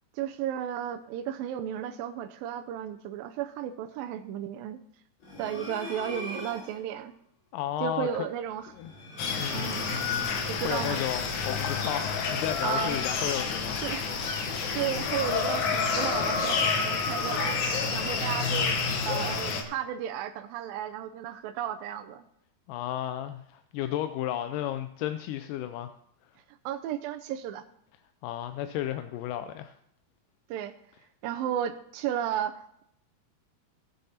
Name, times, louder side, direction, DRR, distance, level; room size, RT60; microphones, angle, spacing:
voice 1, 0.1-4.8 5.4-7.1 7.8-8.7 9.5-9.9 10.5-11.0 12.6-13.0 13.7-14.1 14.7-17.6 17.9-18.8 19.1-22.2 26.5-27.7 30.5-30.7 31.2-32.8, right 10 dB, 85° right, 8 dB, 2.4 m, -34 dB
sound 1, 5.2-6.8 8.7-10.7, left 5 dB, 45° left, 5.6 m, -38 dB
voice 2, 7.5-8.3 8.8-8.9 9.4-9.7 10.6-14.1 22.7-25.9 28.2-29.8, left 11 dB, 80° left, 10 dB, 2.0 m, -33 dB
sound 2, 9.2-19.6, left 5 dB, 65° left, 2.4 m, -29 dB
18.0 x 7.1 x 4.3 m, 0.73 s
omnidirectional pair, 4.1 m